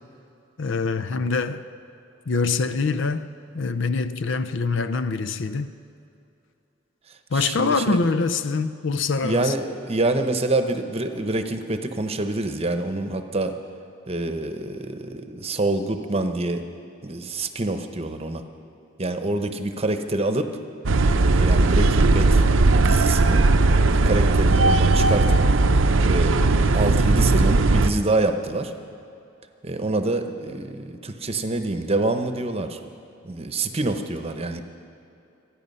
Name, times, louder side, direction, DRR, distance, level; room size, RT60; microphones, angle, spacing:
voice 1, 0.6-1.6 2.3-3.3 3.5-5.7 7.3-9.5, left 4 dB, 65° left, 0.6 m, -24 dB
voice 2, 7.3-8.1 9.2-13.5 14.1-16.6 17.0-18.4 19.0-20.5 21.3-23.5 23.8-25.4 26.0-28.7 29.6-32.8 33.2-34.6, right 2 dB, 30° right, 0.9 m, -26 dB
sound 1, 20.9-27.9, right 3 dB, 75° right, 0.7 m, -18 dB
26.0 x 10.0 x 5.5 m
head